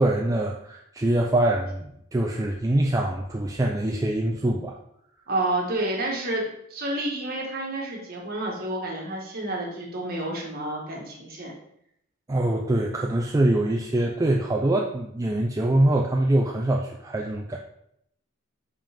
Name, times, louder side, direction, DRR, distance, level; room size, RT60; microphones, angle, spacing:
voice 1, 0.0-4.7 12.3-17.6, right 1 dB, 15° right, 0 dB, 0.4 m, -24 dB
voice 2, 5.3-11.5, right 1 dB, 45° right, -2 dB, 1.6 m, -29 dB
5.3 x 5.3 x 3.5 m, 0.74 s
head